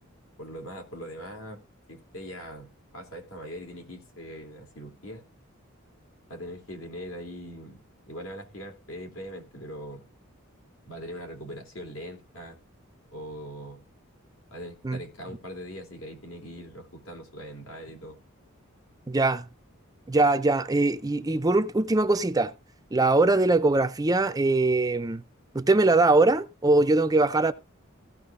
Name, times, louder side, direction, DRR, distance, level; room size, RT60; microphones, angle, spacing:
voice 1, 0.4-1.6 1.9-5.3 6.3-7.8 8.1-10.1 10.9-12.6 13.1-13.9 14.5-18.2, equal, 75° left, 3.5 m, -41 dB
voice 2, 19.1-19.4 20.1-22.5 22.9-25.2 25.5-27.5, right 2 dB, 15° right, 0.5 m, -22 dB
16.0 x 6.2 x 3.7 m
head